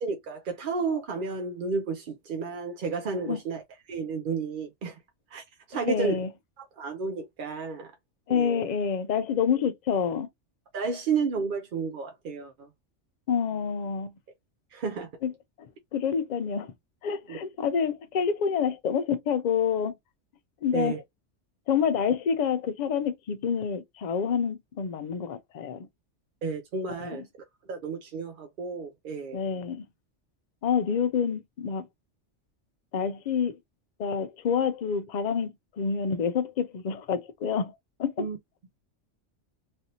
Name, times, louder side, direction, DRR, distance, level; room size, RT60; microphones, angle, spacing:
voice 1, 0.0-3.6 3.9-5.0 5.3-6.2 6.6-7.9 8.3-8.6 10.7-12.7 14.7-15.1 17.3-17.4 20.7-21.0 26.4-27.2 27.7-29.4 38.2-38.4, right 4 dB, 55° right, 0.6 m, -32 dB
voice 2, 5.7-6.3 8.3-10.3 13.3-14.1 15.2-15.3 15.9-16.7 17.0-20.0 20.6-21.0 21.7-25.9 27.0-27.2 29.3-29.8 30.6-31.9 32.9-33.6 34.0-38.3, left 7 dB, 60° left, 0.4 m, -28 dB
3.2 x 2.6 x 2.8 m
omnidirectional pair, 1.3 m